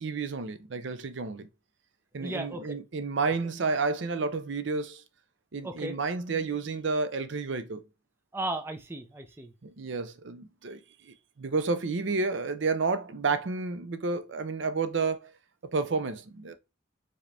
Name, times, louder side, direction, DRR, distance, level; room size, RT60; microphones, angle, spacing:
voice 1, 0.0-1.5 2.1-5.0 5.5-7.8 9.6-15.3 15.7-16.5, right 4 dB, 65° right, 0.6 m, -31 dB
voice 2, 2.2-2.6 5.6-6.0 8.3-9.5, right 1 dB, 10° right, 0.5 m, -35 dB
4.9 x 2.9 x 3.3 m
head